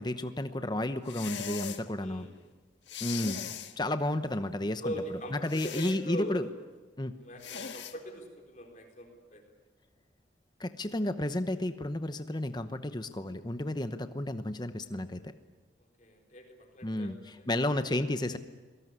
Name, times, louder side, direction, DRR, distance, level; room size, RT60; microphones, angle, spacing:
voice 1, 0.0-2.3 3.0-3.4 3.8-4.9 5.3-6.5 7.0-7.1 10.6-15.3 16.8-18.4, left 1 dB, 20° left, 10 dB, 0.9 m, -32 dB
sound 1, 1.1-1.8 2.9-3.7 5.5-6.0 7.4-7.9, left 8 dB, 65° left, 1.6 m, -39 dB
voice 2, 2.0-2.3 3.1-3.3 4.8-6.4 7.2-9.4 16.0-17.5, equal, 40° left, 3 dB, 4.1 m, -41 dB
26.5 x 18.5 x 9.7 m, 1.3 s
head